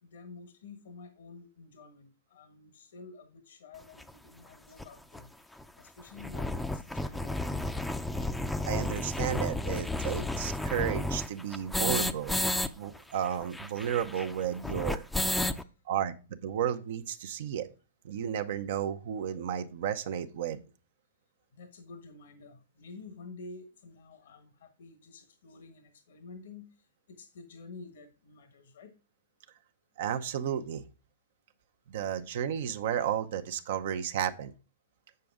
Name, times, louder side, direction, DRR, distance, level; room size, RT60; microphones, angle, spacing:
voice 1, 0.0-5.3 5.8-7.5 15.6-15.7 21.5-26.7 27.1-28.9, left 4 dB, 75° left, 8 dB, 1.3 m, -50 dB
sound 1, 4.0-4.1 4.8-4.9 5.1-5.2 5.5-5.6 6.0-12.7 12.9-13.0 13.2-15.6, left 1 dB, 5° left, 0.5 m, -32 dB
voice 2, 8.7-12.3 12.7-15.0 15.9-17.7 18.0-20.6 30.0-30.8 31.9-34.5, right 9 dB, 65° right, 8 dB, 0.7 m, -33 dB
7.7 x 6.6 x 3.6 m, 0.33 s
hypercardioid pair, 120°, 0 cm